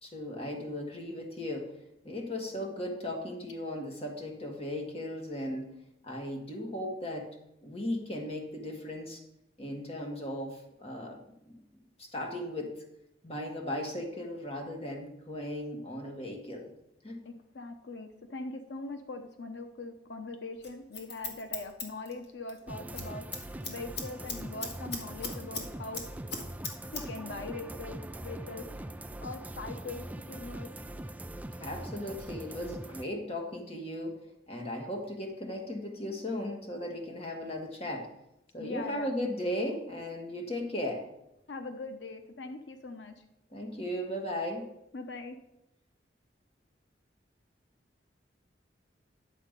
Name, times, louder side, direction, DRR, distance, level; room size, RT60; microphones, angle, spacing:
voice 1, 0.0-1.7 2.0-5.8 6.0-7.4 7.6-9.2 9.6-12.8 13.2-16.7 17.0-17.2 31.6-34.2 34.5-38.1 38.5-41.1 43.5-44.7, left 1 dB, 35° left, 2 dB, 1.8 m, -37 dB
voice 2, 17.2-26.0 26.9-28.6 29.2-30.7 38.6-39.1 41.5-43.2 44.9-45.4, left 3 dB, 85° left, 7 dB, 0.8 m, -41 dB
Scissors, 20.6-22.6 22.9-23.1 23.3-25.7 25.9-27.0 27.3-27.4, left 4 dB, 65° left, 1.9 m, -38 dB
sound 1, 22.7-33.0, right 1 dB, 10° right, 0.3 m, -42 dB
11.0 x 7.4 x 5.2 m, 0.86 s
head